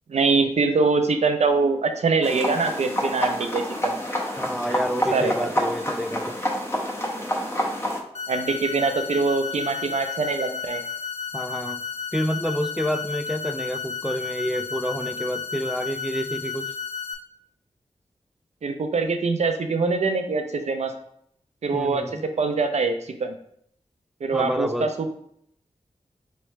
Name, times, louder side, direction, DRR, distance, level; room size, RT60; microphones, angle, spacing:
voice 1, 0.1-3.9 5.1-5.5 8.3-10.8 18.6-20.9 21.6-22.0 22.4-23.3 24.2-25.1, right 4 dB, 65° right, 7 dB, 0.6 m, -23 dB
sound 1, 2.2-8.0, equal, 20° left, 0.9 m, -28 dB
voice 2, 4.4-6.4 11.3-11.8 12.1-16.7 21.7-22.2 24.3-24.9, equal, ahead, 9 dB, 0.3 m, -28 dB
sound 2, 8.1-17.1, left 6 dB, 65° left, 0.7 m, -33 dB
4.5 x 3.2 x 3.1 m, 0.70 s
cardioid pair, 60°, 12 cm